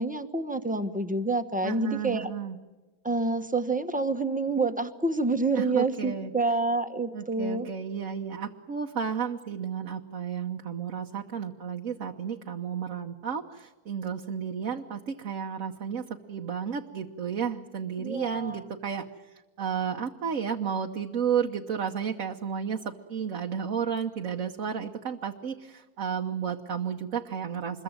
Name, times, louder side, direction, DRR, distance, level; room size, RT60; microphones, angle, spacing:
voice 1, 0.0-2.3 3.0-7.7 18.0-18.6, right 3 dB, 5° right, 8 dB, 1.1 m, -28 dB
voice 2, 1.6-2.6 5.5-6.3 7.1-27.8, right 7 dB, 55° right, 2 dB, 1.5 m, -32 dB
26.5 x 22.5 x 9.1 m, 1.2 s
omnidirectional pair, 1.7 m